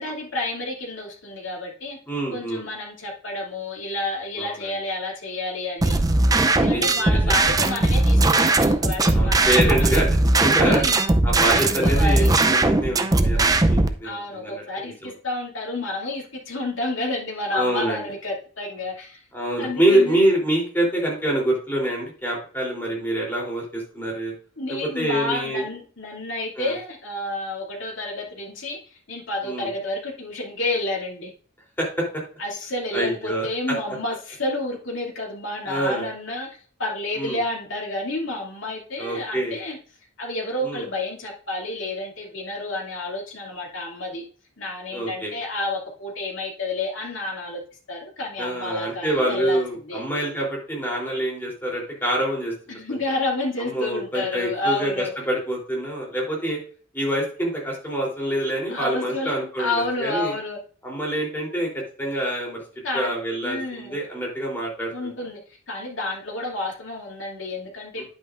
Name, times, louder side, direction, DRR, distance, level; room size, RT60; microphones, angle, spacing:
voice 1, 0.0-2.0 2.3-6.0 6.5-9.9 10.6-11.0 11.5-12.3 14.0-19.2 19.6-20.2 24.6-31.3 32.4-36.5 36.8-39.8 40.2-44.2 44.6-47.6 47.9-50.0 52.7-55.1 58.7-59.3 59.6-60.6 62.8-63.1 63.4-64.0 64.9-65.4 65.7-68.0, left 2 dB, 70° left, -1 dB, 2.7 m, -30 dB
voice 2, 2.1-2.6 4.4-4.5 6.7-7.4 9.1-10.1 10.4-10.8 11.2-15.1 17.5-18.0 19.3-24.3 24.9-25.6 26.6-26.7 29.4-29.7 31.8-32.2 32.9-33.8 35.7-36.1 37.2-37.4 39.0-39.6 40.6-40.8 44.9-45.3 48.4-52.5 52.9-53.0 53.6-56.6 56.9-59.7 60.0-60.3 60.8-62.6 62.9-65.1 68.0-68.1, right 1 dB, 10° left, -2 dB, 3.4 m, -26 dB
sound 1, 5.8-13.9, right 2 dB, 20° right, 0.5 m, -19 dB
10.0 x 8.8 x 2.6 m, 0.42 s
head